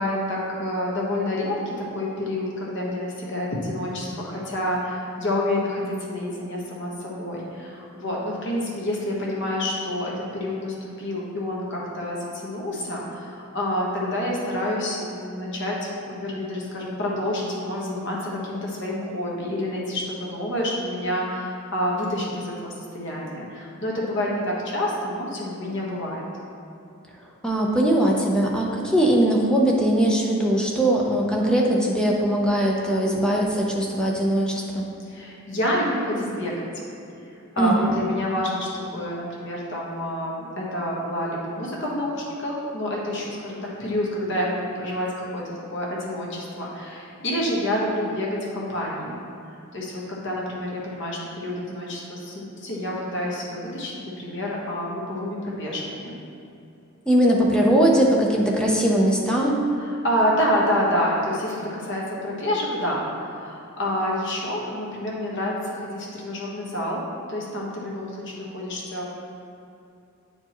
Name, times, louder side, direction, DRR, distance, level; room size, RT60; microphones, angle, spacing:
voice 1, 0.0-26.2 35.0-36.7 37.5-45.4 45.7-49.1 49.7-56.1 57.3-57.6 59.8-67.0 67.3-69.1, left 1 dB, 55° left, -4 dB, 1.3 m, -28 dB
voice 2, 27.4-34.9 37.6-37.7 57.1-59.6, right 1 dB, 5° left, -2 dB, 0.6 m, -20 dB
8.5 x 4.6 x 3.0 m, 2.7 s
head